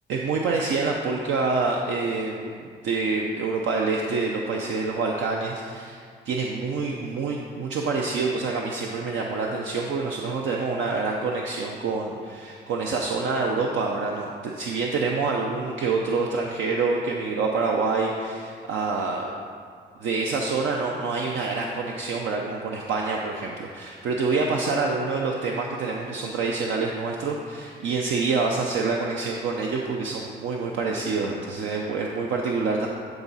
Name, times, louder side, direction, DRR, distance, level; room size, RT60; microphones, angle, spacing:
voice 1, 0.1-19.4 20.0-32.9, right 4 dB, 75° right, 0 dB, 0.7 m, -27 dB
11.5 x 4.0 x 4.1 m, 2.1 s
cardioid pair, 90°, 20 cm